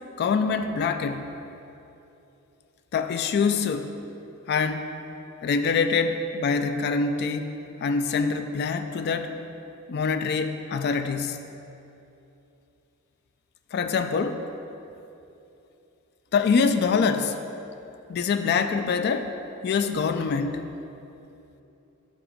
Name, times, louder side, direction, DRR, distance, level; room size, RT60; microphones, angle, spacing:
voice 1, 0.2-1.3 2.9-3.9 4.5-4.9 5.4-7.5 7.8-9.4 9.9-11.4 13.7-14.4 16.3-17.4 18.1-19.3 19.6-20.7, left 5 dB, 50° left, 8 dB, 0.3 m, -25 dB
7.7 x 4.0 x 4.9 m, 2.8 s
head